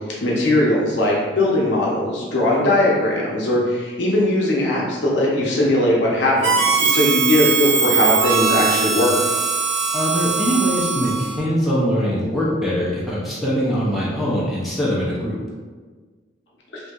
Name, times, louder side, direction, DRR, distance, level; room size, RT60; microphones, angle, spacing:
voice 1, 0.2-9.1, left 1 dB, 65° left, -4 dB, 0.7 m, -19 dB
Harmonica, 6.4-11.5, right 5 dB, 80° right, 0.4 m, -20 dB
voice 2, 9.9-15.4, equal, ahead, -8 dB, 0.4 m, -22 dB
2.7 x 2.6 x 2.3 m, 1.4 s
head